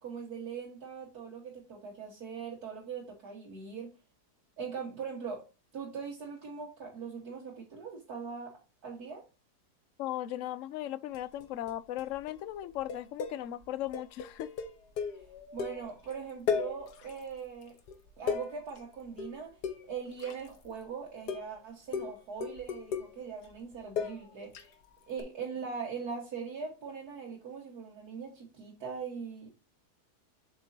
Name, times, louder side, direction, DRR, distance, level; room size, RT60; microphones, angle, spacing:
voice 1, 0.0-3.9 4.6-5.5 5.7-8.6 8.8-9.2 15.1-15.3 15.5-17.8 18.2-19.6 19.9-24.7 25.1-29.5, right 6 dB, 70° right, 2.1 m, -41 dB
voice 2, 10.0-14.5, left 13 dB, 70° left, 0.8 m, -37 dB
sound 1, 11.1-11.7 12.0-12.3 12.6-16.1 16.5-17.3 17.6-20.8 21.3-21.6 21.9-24.7 25.2-25.3, left 6 dB, 85° left, 1.6 m, -36 dB
7.3 x 5.3 x 2.7 m
omnidirectional pair, 1.7 m